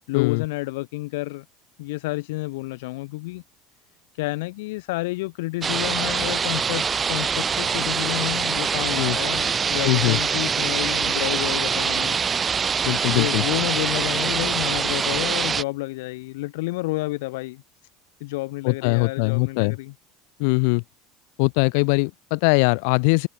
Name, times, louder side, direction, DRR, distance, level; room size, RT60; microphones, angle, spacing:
voice 1, 0.1-1.4 1.8-3.4 4.2-12.2 13.1-17.6 18.2-19.9, left 21 dB, 85° left, 2.2 m, -30 dB
sound 1, 5.6-15.6, right 6 dB, 20° right, 0.7 m, -24 dB
voice 2, 9.8-10.2 12.8-13.4 18.6-19.8 20.4-20.8 21.4-23.3, left 35 dB, 65° left, 2.6 m, -21 dB
cardioid pair, 165°, 0 cm